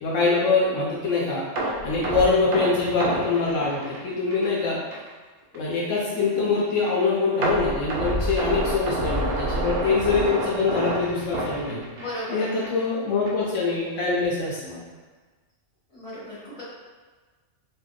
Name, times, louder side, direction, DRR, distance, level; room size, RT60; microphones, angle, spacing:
voice 1, 0.0-4.8 5.5-11.8 12.3-14.8, left 4 dB, 80° left, -5 dB, 1.0 m, -24 dB
sound 1, 1.6-4.6 4.9-5.1 5.5-5.6 7.4-12.3 12.6-12.8 13.3-13.4, right 1 dB, 65° right, 0.7 m, -28 dB
voice 2, 11.9-12.4 15.9-16.6, left 1 dB, 30° left, -11 dB, 1.5 m, -35 dB
2.7 x 2.1 x 3.6 m, 1.4 s
omnidirectional pair, 1.3 m